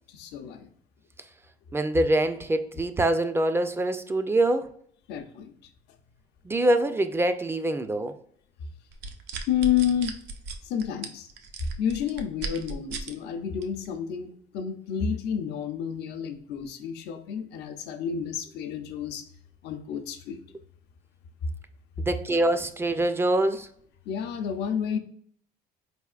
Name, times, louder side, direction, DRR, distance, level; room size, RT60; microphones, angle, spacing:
voice 1, 0.1-0.7 5.1-5.5 9.5-10.2 10.6-11.3 11.8-19.2 19.6-20.4 24.1-25.0, left 8 dB, 85° left, 6 dB, 0.6 m, -30 dB
voice 2, 1.7-4.7 6.4-8.2 22.0-23.7, right 1 dB, 15° right, 9 dB, 0.3 m, -24 dB
sound 1, 8.9-13.1 13.6-13.9, right 4 dB, 85° right, 0.5 m, -36 dB
4.2 x 3.4 x 2.3 m, 0.62 s
cardioid pair, 110°, 17 cm